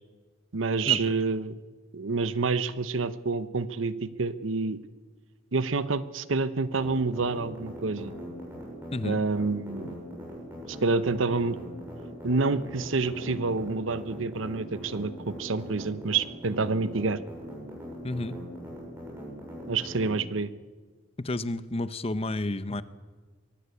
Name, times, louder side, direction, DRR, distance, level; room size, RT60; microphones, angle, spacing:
voice 1, 0.5-1.6 1.9-4.8 5.5-8.1 9.0-10.0 10.7-11.6 12.2-17.2 19.7-20.5, right 4 dB, 85° right, 14 dB, 0.9 m, -28 dB
sound 1, 6.7-20.1, equal, 10° right, 7.3 m, -41 dB
voice 2, 18.0-18.4 21.2-22.8, left 2 dB, 30° left, 14 dB, 0.8 m, -30 dB
23.0 x 16.5 x 8.4 m, 1.4 s
head